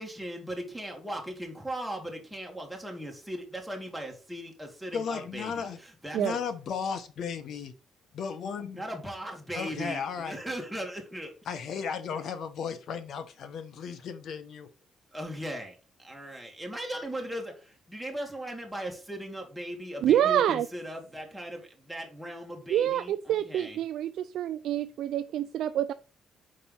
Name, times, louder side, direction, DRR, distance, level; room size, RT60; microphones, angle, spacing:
voice 1, 0.0-6.4 8.7-11.3 15.1-23.8, equal, ahead, 0 dB, 2.3 m, -38 dB
voice 2, 4.9-5.8 6.2-7.7 8.1-8.8 9.5-10.4 11.5-14.7, left 6 dB, 65° left, 11 dB, 1.0 m, -35 dB
voice 3, 20.0-20.7 22.7-25.9, right 11 dB, 75° right, 10 dB, 0.3 m, -27 dB
5.4 x 4.2 x 5.5 m, 0.35 s
cardioid pair, 90°, 0 cm